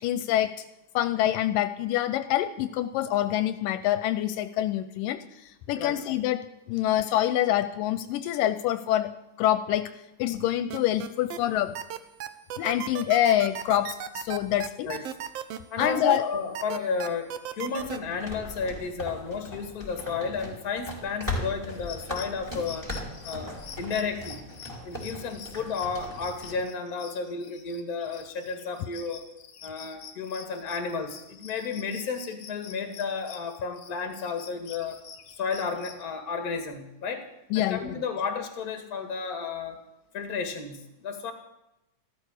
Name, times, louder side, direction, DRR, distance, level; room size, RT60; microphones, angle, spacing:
voice 1, 0.0-0.5 0.9-9.1 9.4-9.9 10.2-11.8 12.6-14.9 15.8-16.2 37.5-38.0, left 12 dB, 80° left, 11 dB, 2.3 m, -26 dB
sound 1, 10.7-11.4 11.7-16.2 16.5-18.0, right 10 dB, 75° right, 1.5 m, -35 dB
voice 2, 15.7-22.9 23.2-24.4 24.8-29.2 29.6-35.0 35.4-37.2 37.5-39.8 40.1-41.3, left 5 dB, 30° left, 6 dB, 2.0 m, -32 dB
sound 2, 17.8-26.6, left 1 dB, 5° right, 4.1 m, -38 dB
sound 3, 21.7-36.0, left 7 dB, 55° left, 2.1 m, -47 dB
14.5 x 13.0 x 6.5 m, 0.87 s
omnidirectional pair, 4.0 m